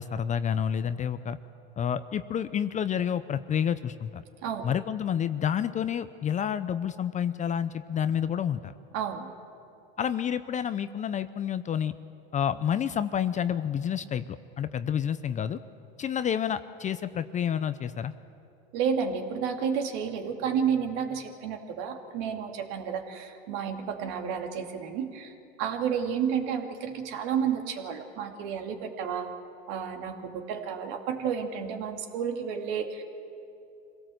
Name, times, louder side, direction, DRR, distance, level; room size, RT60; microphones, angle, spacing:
voice 1, 0.0-1.4 1.8-4.2 4.6-8.7 10.0-11.9 12.3-15.6 16.0-18.1, left 8 dB, 25° left, 12 dB, 0.6 m, -29 dB
voice 2, 8.9-9.3 18.7-25.3 25.6-29.3 29.7-33.0, right 7 dB, 60° right, 4 dB, 2.6 m, -31 dB
25.5 x 17.5 x 7.8 m, 2.7 s
supercardioid pair, 120°, 30 cm